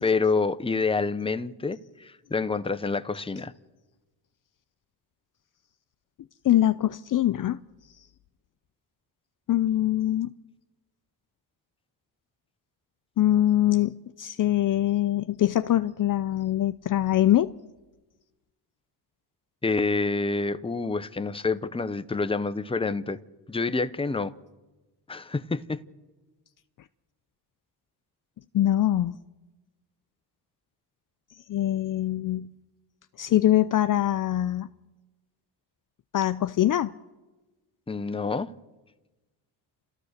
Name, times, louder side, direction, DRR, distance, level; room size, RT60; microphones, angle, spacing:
voice 1, 0.0-3.5 19.6-23.2 23.5-24.3 25.1-25.8 37.9-38.5, left 4 dB, 15° left, 0.8 m, -27 dB
voice 2, 6.4-7.6 9.5-10.3 13.2-17.5 28.5-29.1 31.5-32.5 33.2-34.7 36.1-36.9, left 13 dB, 50° left, 0.6 m, -23 dB
29.0 x 14.0 x 6.6 m
cardioid pair, 75°, 43 cm